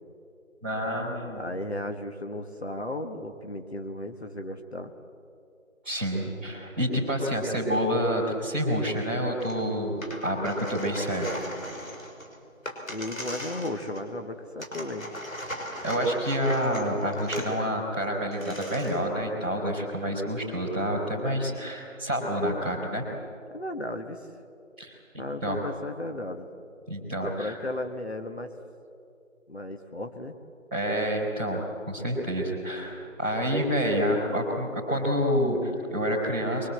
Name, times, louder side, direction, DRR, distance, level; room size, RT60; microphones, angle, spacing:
voice 1, 0.6-1.4 5.8-11.4 15.8-23.0 24.8-25.6 26.9-27.6 30.7-36.7, equal, 10° right, -11 dB, 3.4 m, -28 dB
voice 2, 1.3-4.9 12.9-15.1 23.5-24.3 25.2-26.5 27.2-28.5 29.5-30.3, left 1 dB, 50° left, 5 dB, 1.4 m, -35 dB
sound 1, 9.4-9.6 9.9-14.2 14.6-17.5 18.0-18.1 18.3-19.1, left 1 dB, 80° left, 5.5 m, -38 dB
24.0 x 23.0 x 7.9 m, 2.5 s
figure-of-eight pair, 175°, 40 cm